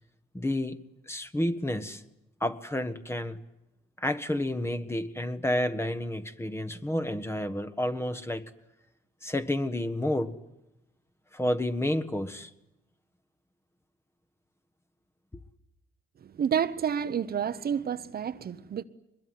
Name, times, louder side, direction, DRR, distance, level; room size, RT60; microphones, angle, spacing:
voice 1, 0.3-0.8 1.1-2.0 2.4-3.4 4.0-8.5 9.2-10.4 11.3-12.5, left 1 dB, 10° left, 1.5 m, -30 dB
voice 2, 16.4-18.8, right 8 dB, 50° right, 1.0 m, -29 dB
23.0 x 21.5 x 9.4 m
cardioid pair, 90°, 20 cm